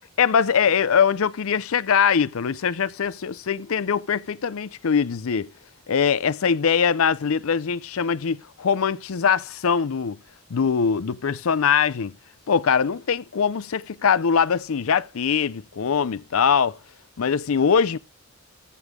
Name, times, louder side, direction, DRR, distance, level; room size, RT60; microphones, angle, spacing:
voice 1, 0.2-5.5 5.9-10.2 10.5-12.1 12.5-16.8 17.2-18.0, left 6 dB, 70° left, 0.5 m, -22 dB
14.5 x 7.0 x 3.6 m
head